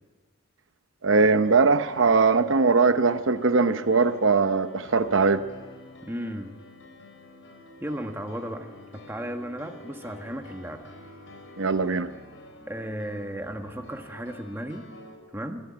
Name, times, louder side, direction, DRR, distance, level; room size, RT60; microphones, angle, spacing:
voice 1, 1.0-5.4 11.6-12.1, right 4 dB, 70° right, 10 dB, 0.8 m, -21 dB
Piano, 1.4-15.2, left 2 dB, 70° left, 4.5 m, -48 dB
voice 2, 6.0-6.5 7.8-10.9 12.7-14.8 15.3-15.6, right 1 dB, 10° right, 4 dB, 1.5 m, -35 dB
24.5 x 16.0 x 8.7 m, 1.4 s
head